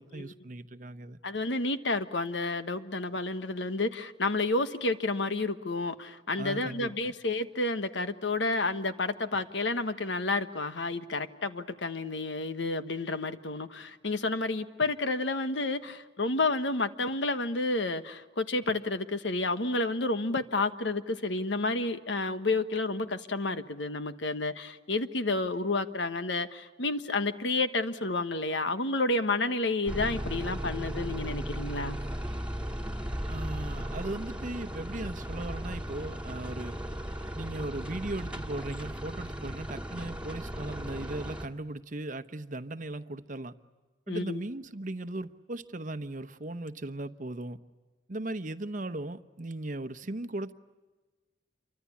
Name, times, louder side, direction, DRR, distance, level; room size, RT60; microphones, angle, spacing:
voice 1, 0.0-1.2 6.4-7.1 33.3-36.8 37.3-43.5 44.1-47.6 48.1-50.5, right 2 dB, 45° right, 0.9 m, -37 dB
voice 2, 1.2-32.0 44.1-44.4, left 2 dB, 75° left, 1.3 m, -30 dB
sound 1, 29.9-41.5, equal, 5° right, 1.9 m, -36 dB
28.0 x 24.5 x 8.5 m
head